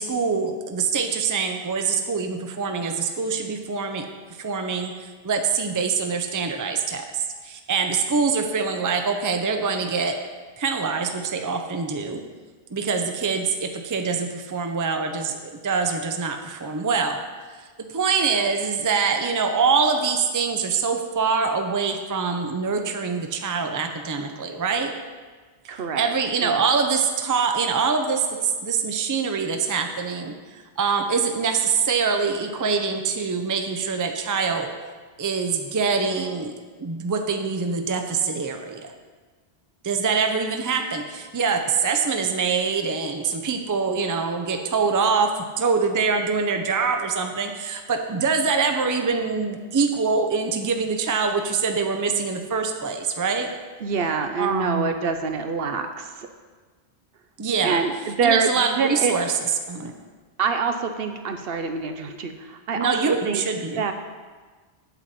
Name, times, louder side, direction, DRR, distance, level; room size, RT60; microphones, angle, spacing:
voice 1, 0.0-4.0 4.4-10.2 10.6-12.2 12.7-17.2 17.9-24.9 26.0-34.7 35.2-36.5 36.8-38.9 39.8-53.5 54.4-54.9 57.4-57.8 58.2-59.3 59.7-59.9 62.7-63.9, right 5 dB, 25° right, 5 dB, 0.5 m, -24 dB
voice 2, 25.7-26.1 26.4-26.6 53.8-56.3 57.6-59.1 60.4-63.4 63.8-63.9, right 5 dB, 65° right, 7 dB, 0.8 m, -26 dB
8.1 x 7.6 x 4.2 m, 1.4 s
omnidirectional pair, 1.1 m